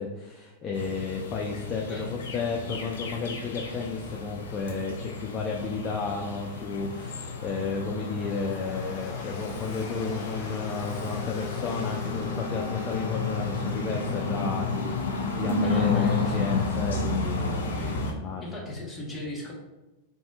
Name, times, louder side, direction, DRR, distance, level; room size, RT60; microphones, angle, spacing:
voice 1, 0.0-17.8 18.2-18.8, left 4 dB, 30° left, 0 dB, 0.4 m, -33 dB
sound 1, 0.7-18.1, left 3 dB, 85° left, 0.5 m, -32 dB
voice 2, 1.8-2.2 15.6-16.7 17.8-18.0 18.4-19.5, left 1 dB, 15° left, -3 dB, 0.9 m, -38 dB
Train, 5.4-15.8, left 3 dB, 55° left, 0.8 m, -46 dB
Wind instrument woodwind instrument, 10.3-15.4, left 4 dB, 35° right, 1.3 m, -44 dB
3.3 x 2.7 x 2.2 m, 1.0 s
hypercardioid pair, 115°, 0 cm